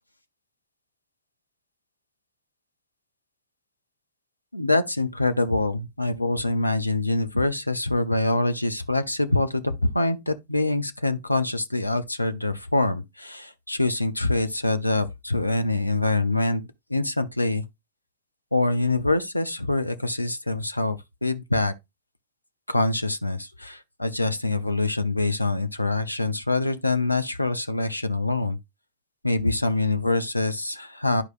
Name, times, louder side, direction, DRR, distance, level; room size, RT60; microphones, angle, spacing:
voice 1, 4.5-16.6 16.9-17.6 18.5-21.7 22.7-28.6 29.2-31.2, left 2 dB, 85° left, 0.5 m, -25 dB
11.5 x 4.7 x 2.4 m
figure-of-eight pair, 90°, 0 cm